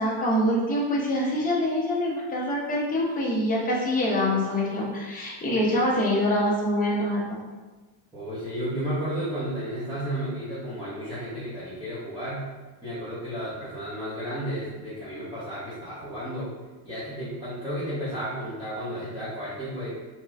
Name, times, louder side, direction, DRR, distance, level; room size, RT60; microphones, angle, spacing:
voice 1, 0.0-7.4, left 1 dB, 20° left, -4 dB, 0.7 m, -25 dB
voice 2, 8.1-12.4 12.8-16.5 16.8-20.0, equal, 10° right, -13 dB, 0.9 m, -33 dB
3.2 x 2.9 x 2.4 m, 1.3 s
cardioid pair, 140°, 46 cm